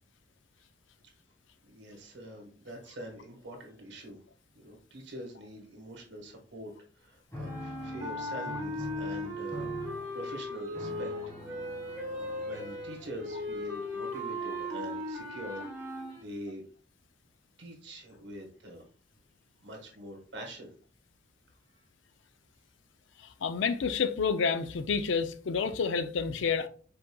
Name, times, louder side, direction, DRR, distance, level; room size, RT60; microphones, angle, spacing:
voice 1, 1.6-4.2 4.5-11.1 12.1-16.6 17.6-18.8 19.6-20.7, equal, 70° right, 1.4 m, -45 dB
sound 1, 7.3-13.8, left 1 dB, 15° left, 1.5 m, -45 dB
sound 2, 7.4-16.1, left 1 dB, 10° right, 1.4 m, -37 dB
sound 3, 9.8-16.2, left 1 dB, 30° left, 2.3 m, -53 dB
voice 2, 23.2-26.7, left 5 dB, 85° left, 0.4 m, -29 dB
5.3 x 4.0 x 2.3 m
head